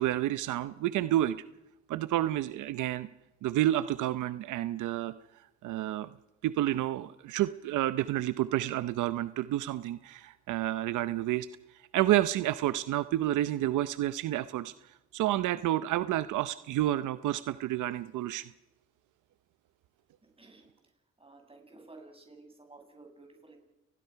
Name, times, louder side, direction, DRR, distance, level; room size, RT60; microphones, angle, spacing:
voice 1, 0.0-1.4 1.9-3.1 3.4-5.1 5.6-6.1 6.4-11.5 11.9-14.7 15.1-18.5, right 14 dB, 80° right, 14 dB, 0.7 m, -29 dB
voice 2, 20.4-20.7 21.2-23.6, right 3 dB, 20° right, 3 dB, 6.7 m, -53 dB
28.5 x 20.5 x 5.8 m, 0.95 s
cardioid pair, 90°, 30 cm